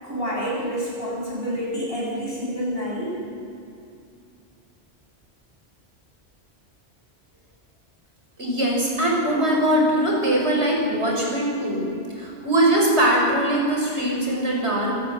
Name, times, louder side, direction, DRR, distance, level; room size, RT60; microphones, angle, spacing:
voice 1, 0.0-3.1, equal, 60° left, -3 dB, 7.6 m, -28 dB
voice 2, 8.4-11.8 12.2-15.0, right 1 dB, 85° right, -2 dB, 6.5 m, -21 dB
26.5 x 17.5 x 7.7 m, 2.5 s
omnidirectional pair, 1.1 m